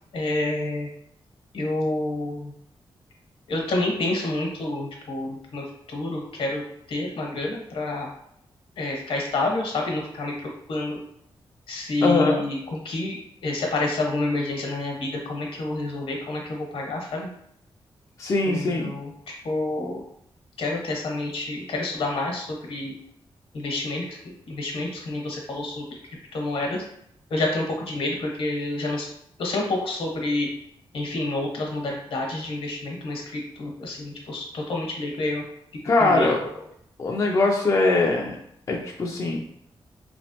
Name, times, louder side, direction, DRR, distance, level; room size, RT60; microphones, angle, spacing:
voice 1, 0.1-0.9 1.5-2.5 3.5-6.6 6.9-8.1 8.8-11.0 11.7-17.3 18.4-19.1 19.4-20.0 20.6-22.9 23.5-24.2 24.5-25.8 26.3-26.8 27.3-29.1 29.4-30.5 30.9-35.4 36.0-36.3, left 2 dB, 75° left, 0 dB, 1.0 m, -28 dB
voice 2, 12.0-12.4 18.2-18.9 35.8-36.4 37.0-38.4 38.7-39.4, left 3 dB, 35° left, 0 dB, 0.4 m, -21 dB
3.3 x 3.1 x 2.8 m, 0.72 s
wide cardioid pair, 130°, 9 cm